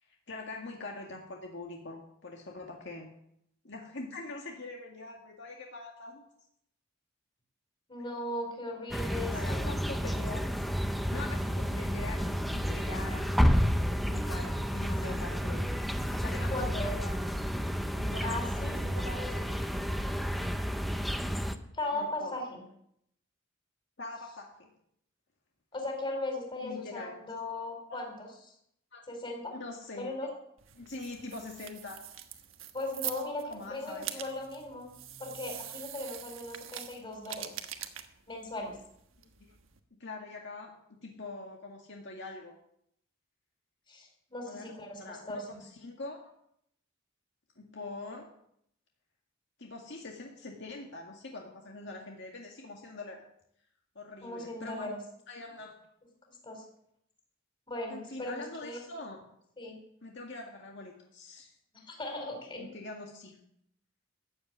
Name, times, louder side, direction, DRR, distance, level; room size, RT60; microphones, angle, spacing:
voice 1, 0.0-3.1 3.6-6.2 8.9-10.5 10.9-13.5 14.0-15.7 16.2-17.1 18.0-19.6 20.3-20.6 21.5-21.6 21.9-22.4 24.0-24.7 26.6-27.4 27.9-28.0 28.9-29.0 29.5-30.1 30.8-32.0 33.5-34.1 39.2-39.5 39.9-42.6 44.5-44.7 45.0-46.2 47.6-48.3 49.6-53.2 54.0-55.0 55.3-55.7 57.9-59.2 60.0-61.6 62.6-63.4, left 3 dB, 60° left, 0 dB, 2.0 m, -44 dB
voice 2, 7.9-9.7 16.5-16.9 18.2-18.8 21.7-22.6 25.7-28.3 29.1-29.5 30.0-30.3 32.7-34.9 35.2-37.5 38.3-38.8 43.9-45.5 54.2-55.0 56.4-56.6 57.7-58.8 59.6-59.8 61.7-62.7, left 2 dB, 25° left, 2 dB, 4.5 m, -38 dB
sound 1, 8.9-21.6, equal, ahead, 0.8 m, -30 dB
sound 2, 30.6-39.8, right 11 dB, 85° right, 1.3 m, -44 dB
14.5 x 7.8 x 9.5 m, 0.73 s
head